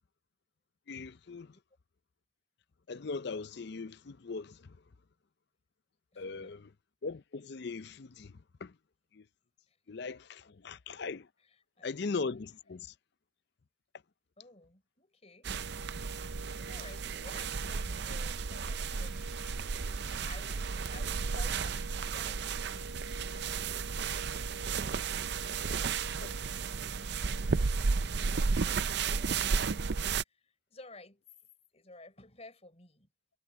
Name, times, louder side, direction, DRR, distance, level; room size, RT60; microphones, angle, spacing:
voice 1, 0.9-1.5 2.9-4.8 6.2-6.6 7.0-8.3 8.6-8.7 9.1-9.2 9.9-11.3 11.8-12.9, left 4 dB, 55° left, 0.5 m, -39 dB
voice 2, 6.1-6.6 9.7-9.8 11.4-12.0 14.4-15.5 16.0-19.7 20.2-24.5 25.3-26.9 30.2-31.2 31.7-33.1, left 2 dB, 30° left, 4.3 m, -55 dB
sound 1, 15.4-30.2, right 5 dB, 55° right, 0.5 m, -33 dB
sound 2, 18.7-21.0 21.6-23.6 24.3-24.7 25.3-27.9, equal, ahead, 5.2 m, -61 dB
head